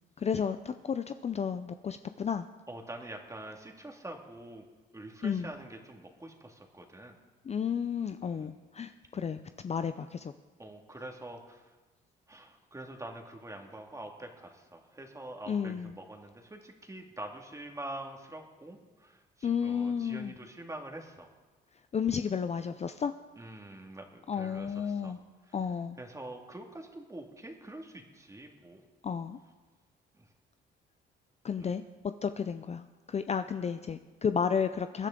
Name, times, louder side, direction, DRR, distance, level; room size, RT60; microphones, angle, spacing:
voice 1, 0.2-2.5 5.2-5.5 7.5-10.3 15.5-15.9 19.4-20.3 21.9-23.1 24.3-25.2 25.5-26.0 29.0-29.4 31.4-31.8 32.2-35.1, left 7 dB, 35° left, 10 dB, 0.5 m, -32 dB
voice 2, 2.7-4.6 4.9-7.2 8.2-8.5 10.6-11.7 12.3-21.3 23.4-25.2 25.5-25.6 26.0-28.9 30.1-30.3 31.5-31.7, right 1 dB, 15° right, 2 dB, 2.0 m, -45 dB
22.5 x 10.0 x 3.8 m, 1.3 s
cardioid pair, 90°, 20 cm